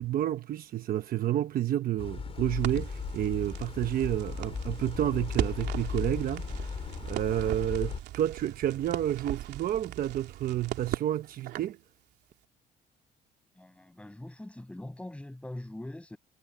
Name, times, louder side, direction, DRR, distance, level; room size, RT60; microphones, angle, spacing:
voice 1, 0.0-11.8, right 12 dB, 60° right, 1.1 m, -30 dB
sound 1, 2.0-8.0, left 6 dB, 35° left, 4.1 m, -36 dB
Crackle, 2.6-11.8, right 14 dB, 80° right, 2.9 m, -39 dB
voice 2, 13.5-16.2, left 1 dB, 5° left, 7.9 m, -42 dB
cardioid pair, 110°, 17 cm